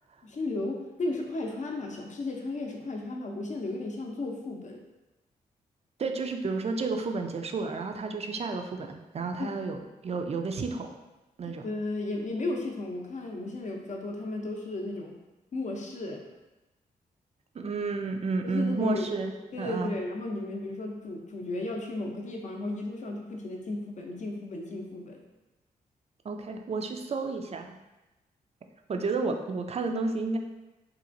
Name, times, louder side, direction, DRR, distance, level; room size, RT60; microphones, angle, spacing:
voice 1, 0.2-4.8 9.4-9.6 11.6-15.2 15.5-16.2 18.4-25.2, left 2 dB, 45° left, 2 dB, 0.6 m, -34 dB
voice 2, 6.0-10.9 11.4-11.7 17.5-19.3 19.6-20.0 26.2-27.8 28.9-30.4, right 3 dB, 40° right, 4 dB, 0.4 m, -31 dB
2.9 x 2.5 x 2.5 m, 1.0 s
supercardioid pair, 45°, 17 cm